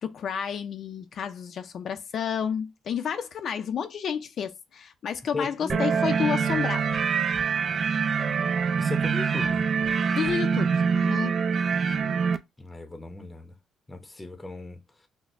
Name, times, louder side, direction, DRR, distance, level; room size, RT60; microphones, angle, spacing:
voice 1, 0.0-6.9 10.2-11.4, left 7 dB, 60° left, 0.5 m, -30 dB
voice 2, 5.3-6.0 8.8-9.7 12.6-13.5 13.9-15.1, left 3 dB, 15° left, 0.7 m, -37 dB
sound 1, 5.7-12.4, right 6 dB, 50° right, 0.4 m, -25 dB
5.9 x 2.1 x 2.5 m
cardioid pair, 95°, 0 cm